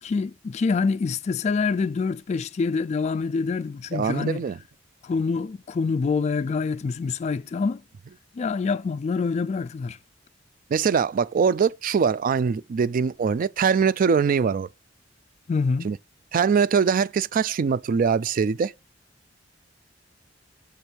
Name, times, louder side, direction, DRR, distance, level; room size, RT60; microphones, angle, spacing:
voice 1, 0.0-4.4 5.0-7.8 8.3-10.0 15.5-15.9, left 4 dB, 35° left, 0.3 m, -26 dB
voice 2, 3.9-4.6 10.7-14.7 15.8-16.0 16.3-18.7, right 6 dB, 45° right, 0.3 m, -22 dB
7.1 x 4.5 x 5.1 m
head